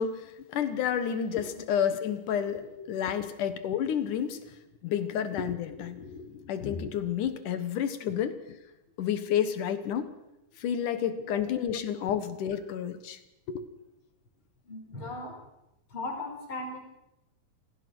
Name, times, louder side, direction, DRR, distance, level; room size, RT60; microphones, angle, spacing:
voice 1, 0.0-4.4 4.8-8.4 9.0-10.1 10.6-13.2 13.5-13.6, left 8 dB, 65° left, 11 dB, 2.7 m, -30 dB
voice 2, 14.6-15.3 15.9-16.8, left 2 dB, 35° left, 2 dB, 5.6 m, -38 dB
27.5 x 17.5 x 6.2 m, 0.91 s
omnidirectional pair, 4.0 m